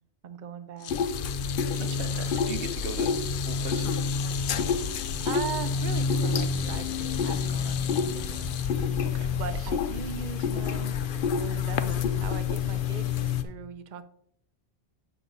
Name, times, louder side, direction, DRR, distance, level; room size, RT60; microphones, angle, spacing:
voice 1, 0.2-0.9 3.0-3.2 5.2-8.5 9.3-10.9 11.4-14.1, right 7 dB, 50° right, 11 dB, 0.7 m, -39 dB
sound 1, 0.8-9.3 9.6-9.9 11.0-11.1, left 10 dB, 90° left, 0.9 m, -39 dB
sound 2, 0.9-13.4, left 6 dB, 60° left, 0.7 m, -28 dB
sound 3, 1.8-13.5, left 2 dB, 10° left, 2.8 m, -51 dB
voice 2, 1.8-3.1 3.5-4.0 9.0-9.3 9.6-9.7, right 4 dB, 90° right, 8 dB, 1.2 m, -38 dB
7.8 x 6.0 x 3.9 m, 0.67 s
omnidirectional pair, 1.1 m